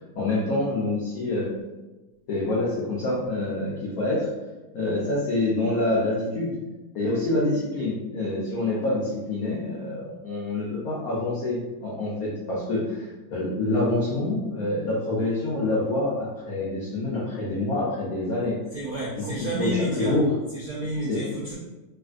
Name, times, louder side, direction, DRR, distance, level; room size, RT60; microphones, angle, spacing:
voice 1, 0.1-1.5 2.3-4.3 4.7-6.5 6.9-18.6 19.2-19.3 19.6-20.3 21.1-21.2, left 2 dB, 80° left, -6 dB, 0.8 m, -26 dB
voice 2, 18.7-20.2 20.5-21.6, right 1 dB, 80° right, -7 dB, 0.8 m, -30 dB
3.4 x 2.5 x 2.4 m, 1.1 s
omnidirectional pair, 2.3 m